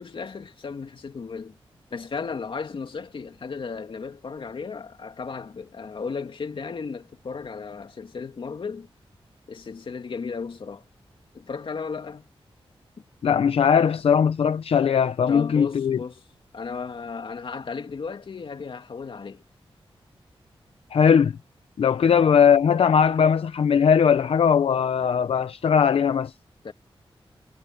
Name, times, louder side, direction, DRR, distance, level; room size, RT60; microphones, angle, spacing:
voice 1, 0.0-1.6 1.9-8.9 9.5-10.8 11.3-12.3 15.3-16.2 16.5-19.4 22.0-22.2 26.6-26.7, left 5 dB, 60° left, 2.6 m, -35 dB
voice 2, 13.2-16.0 20.9-21.3 21.8-26.3, left 7 dB, 80° left, 0.6 m, -19 dB
wide cardioid pair, 110°, 10 cm